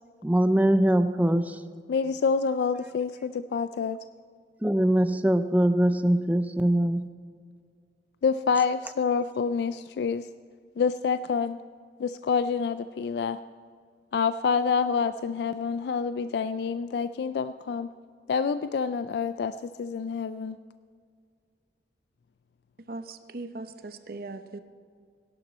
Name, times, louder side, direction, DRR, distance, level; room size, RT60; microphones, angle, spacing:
voice 1, 0.2-1.6 4.6-7.1, right 1 dB, 10° right, 11 dB, 0.5 m, -22 dB
voice 2, 1.9-4.0 8.2-10.3 10.8-11.6 12.0-13.4 14.1-17.9 18.3-20.6, left 5 dB, 65° left, 12 dB, 0.3 m, -27 dB
voice 3, 22.9-24.6, right 2 dB, 55° right, 9 dB, 0.7 m, -39 dB
17.5 x 11.0 x 4.2 m, 2.1 s
head